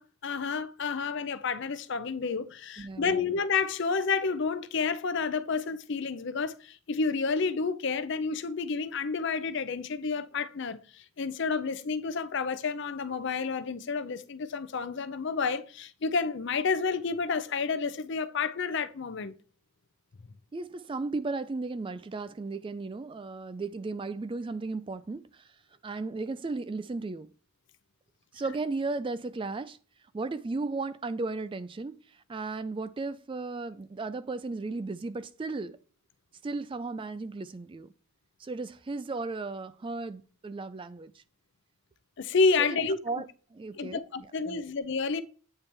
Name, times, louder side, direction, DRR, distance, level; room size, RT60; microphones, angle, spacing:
voice 1, 0.0-19.3 42.2-43.0 43.8-45.2, left 4 dB, 55° left, 0.5 m, -30 dB
voice 2, 2.8-3.2 20.5-25.5 25.8-27.3 28.3-29.8 30.1-35.8 36.4-37.9 38.4-41.2 42.6-44.0 44.5-44.6, right 3 dB, 25° right, 0.3 m, -35 dB
8.8 x 3.3 x 4.3 m
head